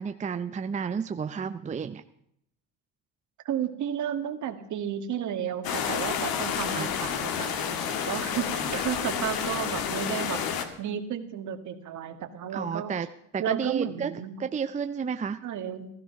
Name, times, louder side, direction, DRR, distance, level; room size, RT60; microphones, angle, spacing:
voice 1, 0.0-2.0 6.7-6.9 8.6-8.8 12.5-13.1 13.3-15.4, right 6 dB, 20° right, 9 dB, 0.6 m, -32 dB
voice 2, 3.5-10.4 10.8-12.9 13.4-14.4 15.4-15.9, right 9 dB, 55° right, 8 dB, 1.8 m, -33 dB
sound 1, 5.6-10.7, left 8 dB, 75° left, 2.0 m, -30 dB
15.5 x 13.5 x 5.8 m, 0.72 s
cardioid pair, 120°, 35 cm